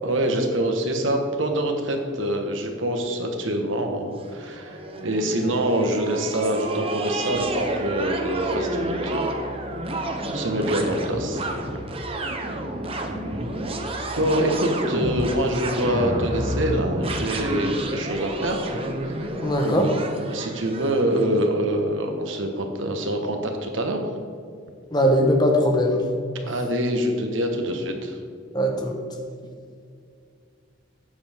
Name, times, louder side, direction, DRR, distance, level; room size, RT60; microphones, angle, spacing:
voice 1, 0.0-9.4 9.9-11.4 14.2-18.6 19.0-19.3 19.6-19.9 20.2-24.0 26.5-28.2, right 1 dB, 75° right, 4 dB, 1.4 m, -25 dB
sound 1, 4.2-21.3, right 1 dB, 30° right, 0.9 m, -30 dB
voice 2, 19.4-20.0 24.9-26.0 26.4-26.5 28.5-29.0, equal, 20° left, 3 dB, 1.2 m, -20 dB
12.0 x 8.9 x 3.6 m, 2.3 s
head